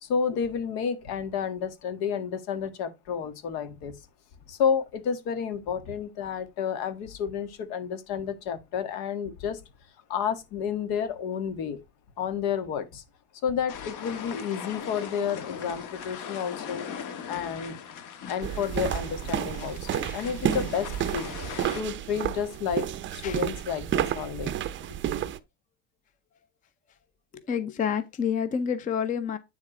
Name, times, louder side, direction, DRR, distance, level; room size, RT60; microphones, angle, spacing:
voice 1, 0.0-3.9 4.5-9.6 10.1-11.8 12.2-13.0 13.4-16.9 17.3-17.8 18.3-21.3 21.7-22.9 23.1-24.5, left 7 dB, 70° left, 1.6 m, -30 dB
sound 1, 13.7-21.8, left 7 dB, 50° left, 1.4 m, -40 dB
sound 2, 18.4-25.4, right 10 dB, 30° right, 0.5 m, -31 dB
voice 2, 27.3-29.4, left 7 dB, 20° left, 0.5 m, -29 dB
9.6 x 3.6 x 4.3 m
cardioid pair, 145°, 39 cm